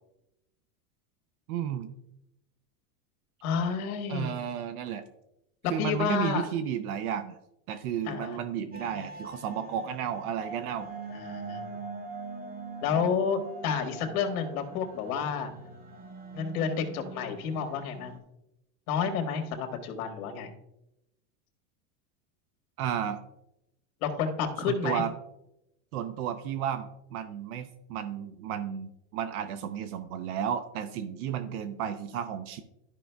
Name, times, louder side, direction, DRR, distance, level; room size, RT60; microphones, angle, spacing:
voice 1, 1.5-1.9 4.1-5.0 5.7-7.4 7.7-10.9 22.8-23.2 24.6-25.1 25.9-32.6, right 9 dB, 80° right, 10 dB, 0.7 m, -33 dB
voice 2, 3.4-4.4 5.6-6.5 8.0-8.4 11.1-11.8 12.8-15.5 16.3-18.1 18.9-20.5 24.0-25.0, left 6 dB, 70° left, 4 dB, 1.6 m, -30 dB
sound 1, 8.7-18.2, right 3 dB, 20° right, 0.8 m, -43 dB
13.0 x 5.4 x 2.2 m, 0.87 s
supercardioid pair, 155°, 44 cm